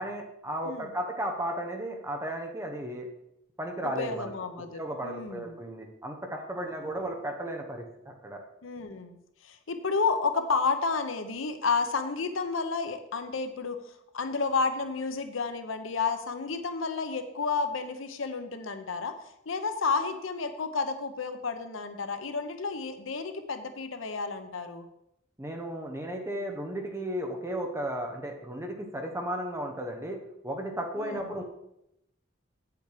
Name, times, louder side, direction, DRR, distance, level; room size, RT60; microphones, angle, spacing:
voice 1, 0.0-3.1 3.6-4.3 4.7-8.4 25.4-30.2 30.4-31.4, right 1 dB, 15° right, 3 dB, 1.2 m, -34 dB
voice 2, 3.8-5.6 6.6-7.0 8.6-9.2 9.4-13.8 14.1-19.1 19.5-24.8 31.0-31.2, left 4 dB, 80° left, 9 dB, 0.8 m, -31 dB
8.2 x 7.0 x 5.0 m, 0.82 s
head